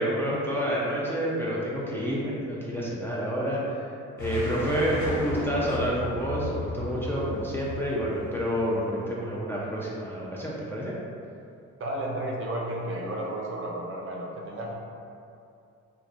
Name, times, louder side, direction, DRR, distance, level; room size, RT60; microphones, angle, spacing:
voice 1, 0.0-10.9, equal, 10° left, -6 dB, 0.4 m, -29 dB
sound 1, 4.2-8.9, left 1 dB, 75° left, 1.1 m, -35 dB
voice 2, 11.8-14.7, right 1 dB, 45° right, -2 dB, 0.5 m, -32 dB
3.1 x 2.3 x 2.5 m, 2.6 s
cardioid pair, 90°, 30 cm